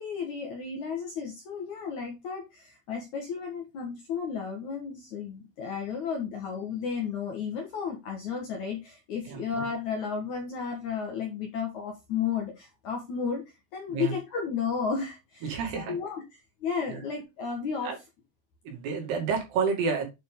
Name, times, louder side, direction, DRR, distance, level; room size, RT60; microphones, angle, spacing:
voice 1, 0.0-13.4 13.7-16.2 16.6-17.9, left 6 dB, 55° left, 2 dB, 2.3 m, -33 dB
voice 2, 15.4-15.9 16.9-17.0 17.8-18.0 18.7-20.1, right 5 dB, 65° right, 1 dB, 4.2 m, -29 dB
9.0 x 5.4 x 3.7 m, 0.24 s
omnidirectional pair, 5.1 m